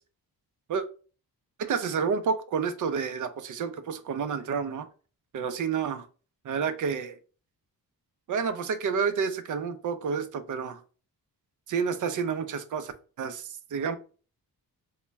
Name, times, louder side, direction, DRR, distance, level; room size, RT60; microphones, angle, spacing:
voice 1, 1.6-4.9 5.3-6.1 6.4-7.2 8.3-10.8 11.7-14.0, right 6 dB, 55° right, 0.5 m, -30 dB
4.0 x 2.2 x 3.3 m
wide cardioid pair, 160°, 38 cm